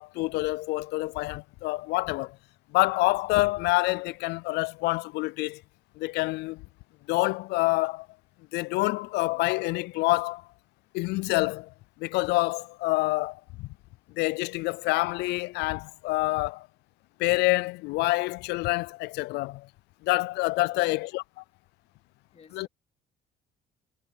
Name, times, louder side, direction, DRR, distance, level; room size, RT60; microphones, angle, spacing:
voice 1, 0.0-2.4 2.7-5.6 6.0-6.6 7.1-8.1 8.5-10.4 10.9-11.7 12.0-13.7 14.2-16.7 17.2-19.7 20.0-21.2 22.5-22.7, left 21 dB, 85° left, 0.4 m, -27 dB
voice 2, 22.3-22.7, left 6 dB, 40° left, 3.1 m, -49 dB
cardioid pair, 110°, 17 cm